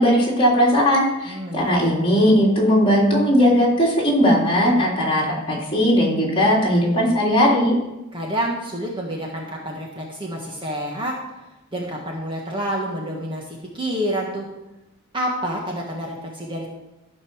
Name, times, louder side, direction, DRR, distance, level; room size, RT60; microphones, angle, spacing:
voice 1, 0.0-7.8, equal, 25° left, -4 dB, 3.5 m, -18 dB
voice 2, 1.2-1.9 8.1-11.3 11.7-14.5 15.1-16.7, equal, 20° right, -1 dB, 1.5 m, -28 dB
14.0 x 5.4 x 6.3 m, 0.96 s
head